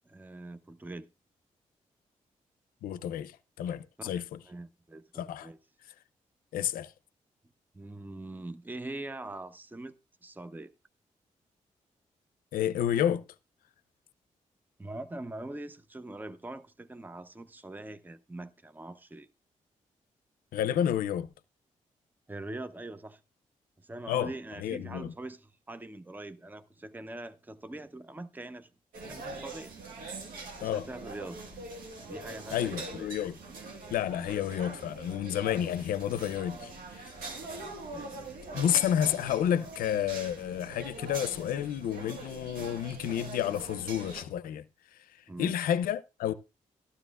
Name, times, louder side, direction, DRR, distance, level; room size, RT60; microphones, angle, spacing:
voice 1, 0.1-1.1 4.0-5.6 7.7-10.7 14.8-19.3 22.3-23.2 23.8-28.7 29.1-29.7 30.6-31.4 32.1-33.1 36.5-36.6 37.4-38.2 38.5-38.6 45.3-45.7, right 2 dB, 10° right, 0.7 m, -43 dB
voice 2, 2.8-4.4 5.1-5.5 6.5-6.9 12.5-13.2 20.5-21.3 24.1-24.3 24.6-25.1 30.6-30.8 32.5-33.4 33.9-37.1 38.5-44.6 44.9-46.3, left 10 dB, 85° left, 0.5 m, -30 dB
sound 1, 28.9-44.2, right 2 dB, 85° right, 1.6 m, -43 dB
13.0 x 12.0 x 2.4 m
supercardioid pair, 55°, 14 cm